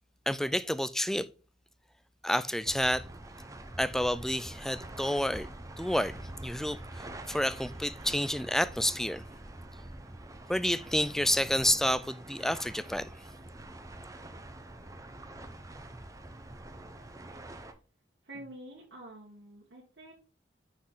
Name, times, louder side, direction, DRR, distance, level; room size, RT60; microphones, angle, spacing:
voice 1, 0.3-1.3 2.2-3.0 3.8-5.5 5.8-9.2 10.5-13.1, left 1 dB, ahead, 0.3 m, -29 dB
sound 1, 2.7-17.7, right 1 dB, 20° right, 0.8 m, -45 dB
voice 2, 18.2-20.1, right 1 dB, 80° right, 1.6 m, -47 dB
6.2 x 6.1 x 3.8 m
head